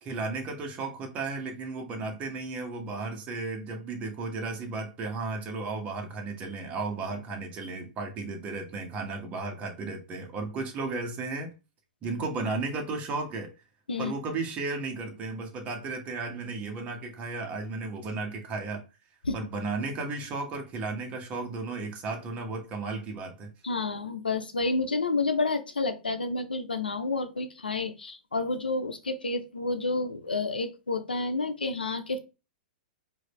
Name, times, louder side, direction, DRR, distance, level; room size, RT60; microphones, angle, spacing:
voice 1, 0.0-11.5 12.0-13.5 14.0-18.8 19.3-23.5, right 3 dB, 30° right, 1.6 m, -34 dB
voice 2, 23.6-32.2, left 3 dB, 90° left, 0.8 m, -30 dB
4.8 x 2.9 x 3.2 m
hypercardioid pair, 115°, 5 cm